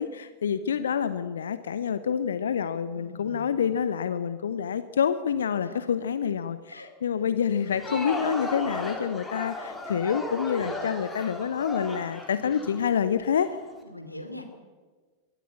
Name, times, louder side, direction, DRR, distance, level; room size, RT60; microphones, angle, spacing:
voice 1, 0.0-13.5, left 7 dB, 65° left, 13 dB, 0.8 m, -27 dB
voice 2, 2.9-3.5 5.6-5.9 6.7-7.4 10.5-10.8 12.3-12.5 13.8-14.5, left 1 dB, 85° left, 6 dB, 2.9 m, -44 dB
Crowd, 7.6-13.5, left 2 dB, 10° left, 3.5 m, -35 dB
22.5 x 14.5 x 8.4 m, 1.4 s
figure-of-eight pair, 90°, 0 cm